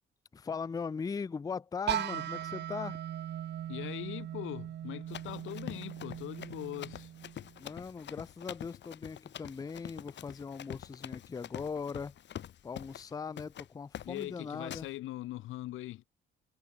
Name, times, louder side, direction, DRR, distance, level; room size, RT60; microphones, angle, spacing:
voice 1, 0.3-3.0 7.6-12.1 12.6-14.9, left 5 dB, 20° left, 0.4 m, -39 dB
sound 1, 1.9-7.7, right 11 dB, 60° right, 0.9 m, -39 dB
voice 2, 3.7-7.1 14.0-16.0, left 16 dB, 85° left, 1.3 m, -41 dB
Run, 5.1-13.1 13.4-13.7 13.9-14.3 14.7-14.9, left 10 dB, 65° left, 1.7 m, -46 dB
cardioid pair, 90°, 20 cm